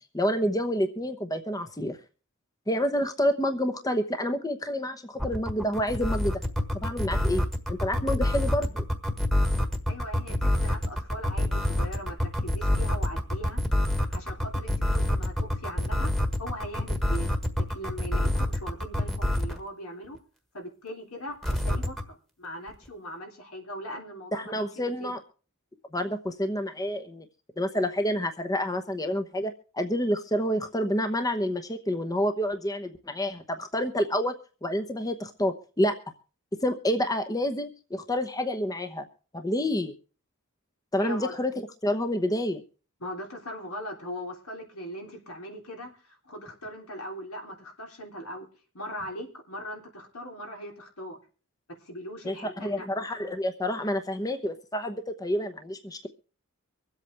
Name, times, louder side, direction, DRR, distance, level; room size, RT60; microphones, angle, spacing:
voice 1, 0.1-2.0 2.7-6.4 6.7-8.8 24.3-25.2 25.9-27.2 27.6-34.3 34.6-35.9 36.6-39.1 39.3-39.9 40.9-41.5 41.8-42.6 52.2-56.1, equal, 15° left, 7 dB, 0.9 m, -28 dB
sound 1, 5.2-19.6 21.4-22.0, left 1 dB, ahead, 1.5 m, -26 dB
voice 2, 9.9-13.6 14.1-16.1 16.4-20.2 20.5-25.1 41.0-41.4 43.0-48.5 48.7-51.2 51.8-52.9, equal, 85° left, 2 dB, 3.3 m, -40 dB
24.5 x 8.2 x 3.4 m, 0.37 s
head